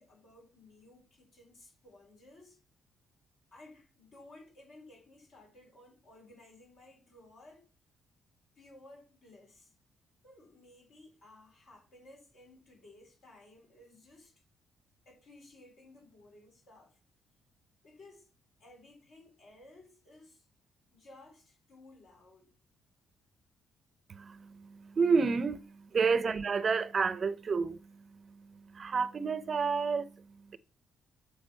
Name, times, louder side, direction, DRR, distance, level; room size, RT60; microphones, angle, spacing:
voice 1, 0.0-2.6 3.5-7.7 8.6-9.7 10.2-14.3 15.1-17.0 17.8-18.3 18.6-20.4 20.9-22.5, left 2 dB, 75° left, 3.8 m, -57 dB
voice 2, 24.1-30.6, right 5 dB, 40° right, 0.5 m, -31 dB
8.0 x 3.4 x 4.4 m
cardioid pair, 90°, 0 cm